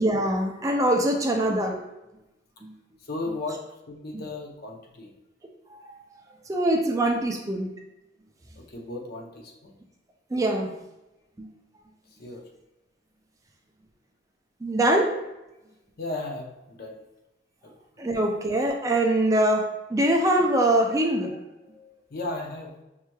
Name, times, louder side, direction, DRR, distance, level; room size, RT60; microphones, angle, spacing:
voice 1, 0.0-1.8 2.6-2.7 5.7-5.9 6.5-7.7 10.3-10.7 11.4-11.5 14.6-15.1 18.0-21.3 21.8-21.9, right 1 dB, 20° right, 2 dB, 0.3 m, -23 dB
voice 2, 3.0-5.1 8.6-9.8 12.1-12.5 16.0-17.0 17.6-18.1 22.1-22.7, left 2 dB, 55° left, 1 dB, 0.6 m, -36 dB
5.5 x 3.0 x 2.2 m, 0.97 s
head